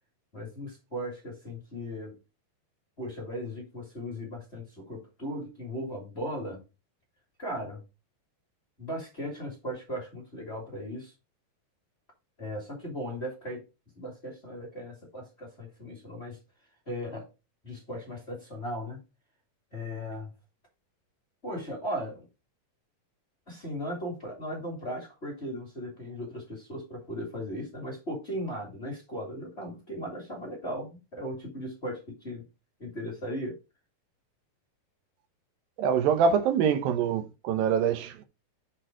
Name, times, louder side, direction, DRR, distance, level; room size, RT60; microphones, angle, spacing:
voice 1, 0.3-2.2 3.0-6.6 7.4-7.8 8.8-11.1 12.4-13.6 14.0-16.4 16.9-17.3 17.6-19.0 19.7-20.3 21.4-22.3 23.5-32.4 32.8-33.6, equal, 20° left, 1.8 m, -37 dB
voice 2, 35.8-38.2, right 7 dB, 80° right, 2.6 m, -25 dB
6.8 x 4.6 x 4.3 m
omnidirectional pair, 4.2 m